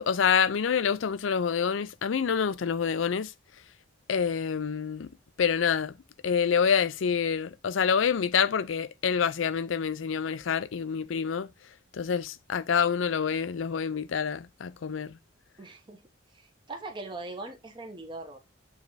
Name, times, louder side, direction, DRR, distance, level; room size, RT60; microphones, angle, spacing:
voice 1, 0.0-3.3 4.1-5.1 5.4-5.9 6.2-11.5 11.9-15.2, left 7 dB, 85° left, 0.5 m, -27 dB
voice 2, 15.6-16.0 16.3-18.4, right 2 dB, 25° right, 1.0 m, -41 dB
7.0 x 3.4 x 4.0 m
head